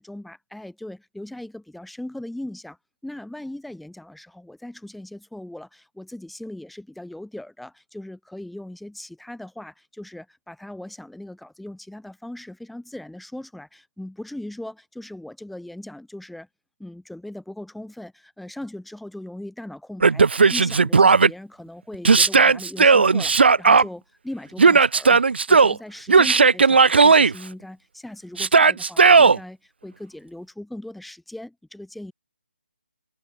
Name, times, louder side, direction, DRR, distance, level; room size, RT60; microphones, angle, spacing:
voice 1, 0.0-2.8 3.0-16.5 16.8-32.1, left 1 dB, ahead, 3.6 m, -39 dB
Yell, 20.0-21.3 22.0-23.8 24.6-25.8 26.1-27.3 28.4-29.4, right 4 dB, 70° right, 0.8 m, -15 dB
hypercardioid pair, 165°, 6 cm